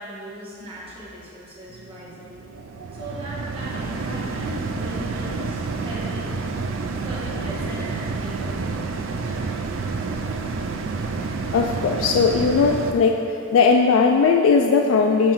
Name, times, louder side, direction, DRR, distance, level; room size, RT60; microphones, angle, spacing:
voice 1, 0.0-2.4 2.9-6.2 7.0-9.5, equal, 30° right, -8 dB, 1.4 m, -38 dB
sound 1, 1.7-12.9, right 4 dB, 75° right, 0.4 m, -29 dB
voice 2, 11.2-13.2 13.5-15.3, left 5 dB, 80° left, 2 dB, 0.3 m, -18 dB
5.8 x 4.0 x 4.5 m, 2.7 s
head